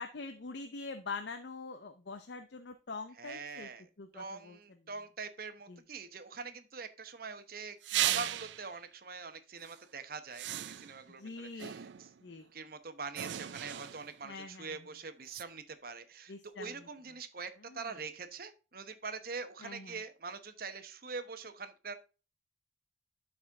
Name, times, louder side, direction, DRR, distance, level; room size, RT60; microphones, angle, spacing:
voice 1, 0.0-3.7 4.0-4.6 5.7-5.8 7.9-8.2 11.2-11.8 12.2-12.5 14.2-14.8 16.3-16.9 17.7-17.8 19.6-20.0, left 4 dB, 65° left, 0.6 m, -44 dB
voice 2, 3.2-12.1 12.5-21.9, right 4 dB, 50° right, 1.0 m, -44 dB
sound 1, 7.8-8.7 9.6-9.8 10.3-11.1 11.6-12.2 13.2-14.2 15.3-15.4, right 12 dB, 75° right, 0.4 m, -36 dB
12.0 x 4.3 x 3.6 m
head